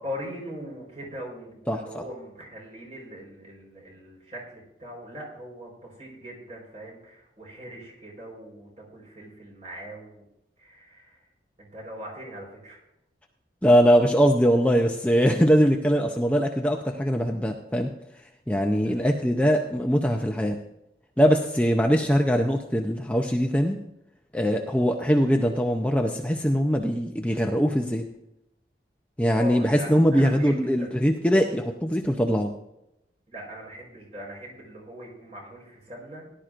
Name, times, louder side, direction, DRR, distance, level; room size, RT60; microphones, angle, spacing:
voice 1, 0.0-10.2 10.6-11.3 11.6-12.8 18.8-19.2 24.6-24.8 29.3-30.9 33.3-36.3, equal, 35° right, -2 dB, 4.5 m, -41 dB
voice 2, 1.7-2.0 13.6-17.9 18.5-20.6 21.2-23.8 24.3-28.1 29.2-32.5, equal, 10° left, 2 dB, 0.6 m, -22 dB
18.0 x 11.5 x 2.6 m, 0.85 s
head